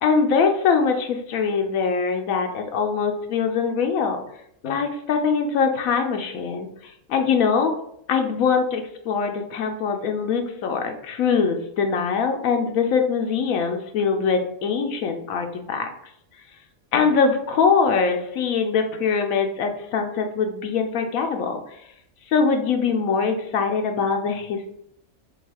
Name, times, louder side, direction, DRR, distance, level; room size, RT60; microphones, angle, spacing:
voice 1, 0.0-4.2 4.6-7.8 8.1-15.9 16.9-21.6 22.3-24.7, left 5 dB, 85° left, 5 dB, 1.1 m, -22 dB
6.2 x 2.3 x 3.4 m, 0.72 s
omnidirectional pair, 1.4 m